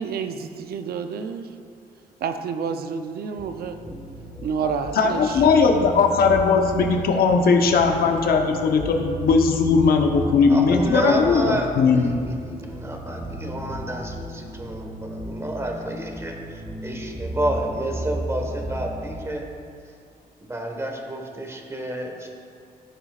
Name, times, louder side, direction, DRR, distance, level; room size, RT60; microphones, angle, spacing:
voice 1, 0.0-1.5 2.2-3.8 4.4-5.5, right 6 dB, 75° right, 7 dB, 0.6 m, -29 dB
sound 1, 3.4-19.1, right 1 dB, 5° left, 1.6 m, -35 dB
voice 2, 4.2-4.5 10.1-19.5 20.4-22.3, right 1 dB, 15° right, 2 dB, 1.3 m, -30 dB
voice 3, 5.0-12.0, left 5 dB, 75° left, 3 dB, 0.9 m, -19 dB
14.5 x 7.0 x 2.4 m, 2.5 s
cardioid pair, 100°, 16 cm